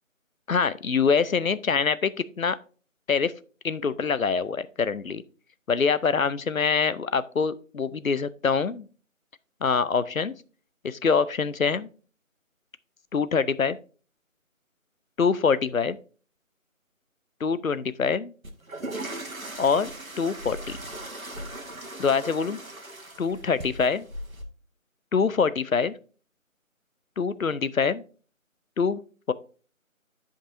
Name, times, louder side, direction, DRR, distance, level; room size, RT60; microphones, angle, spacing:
voice 1, 0.5-2.6 3.1-3.3 3.6-5.2 5.7-8.9 9.6-10.3 10.8-11.9 13.1-13.8 15.2-16.0 17.4-18.3 19.6-19.9 20.2-20.8 22.0-22.6 23.2-24.1 25.1-25.9 27.2-28.0 28.8-29.0 29.3-29.4, left 5 dB, 75° left, 16 dB, 0.6 m, -24 dB
sound 1, 18.4-24.4, right 1 dB, 80° right, 1.4 m, -38 dB
11.5 x 5.3 x 2.6 m, 0.39 s
figure-of-eight pair, 175°, 41 cm